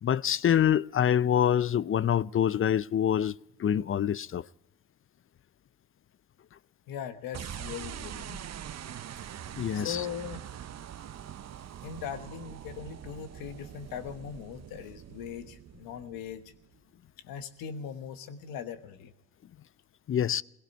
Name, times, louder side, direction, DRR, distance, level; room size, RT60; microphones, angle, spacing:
voice 1, 0.0-4.5 9.6-10.1 20.1-20.4, left 9 dB, 40° left, 0.5 m, -26 dB
voice 2, 6.9-8.4 9.7-10.4 11.8-16.4 17.2-19.1, left 8 dB, 85° left, 1.2 m, -40 dB
sound 1, 7.3-16.7, right 10 dB, 50° right, 0.7 m, -43 dB
18.5 x 17.0 x 4.5 m
supercardioid pair, 50°, 34 cm